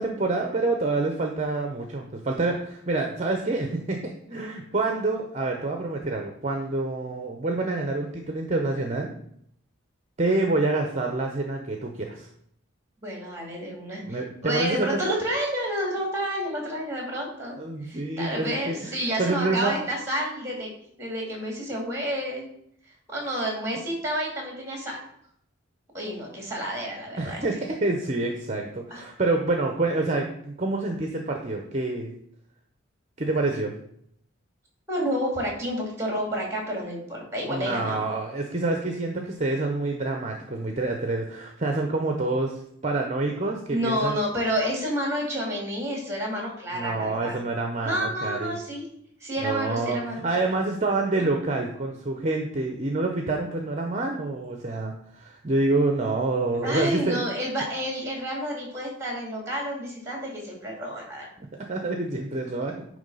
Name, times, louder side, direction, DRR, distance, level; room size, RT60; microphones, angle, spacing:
voice 1, 0.0-9.1 10.2-12.3 14.0-15.1 17.6-19.8 27.2-32.1 33.2-33.7 37.5-44.2 46.7-48.6 49.4-57.2 61.7-62.8, right 2 dB, 35° right, 3 dB, 0.7 m, -27 dB
voice 2, 13.0-17.6 17.8-20.7 21.0-22.4 23.1-25.0 25.9-27.4 28.9-29.0 34.9-38.0 43.7-47.4 47.8-48.9 49.2-50.2 56.6-61.3, equal, 15° right, 0 dB, 2.2 m, -30 dB
9.4 x 3.2 x 5.3 m, 0.71 s
head